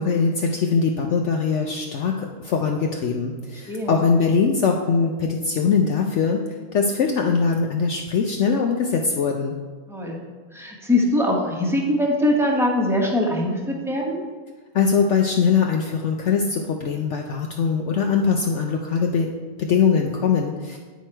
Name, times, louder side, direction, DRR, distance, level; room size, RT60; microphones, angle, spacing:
voice 1, 0.0-6.4 6.7-9.6 14.7-19.3 19.6-20.8, left 5 dB, 65° left, 2 dB, 0.8 m, -21 dB
voice 2, 9.9-10.2 10.5-14.2, left 1 dB, ahead, -1 dB, 0.9 m, -22 dB
9.3 x 4.6 x 4.4 m, 1.4 s
omnidirectional pair, 1.6 m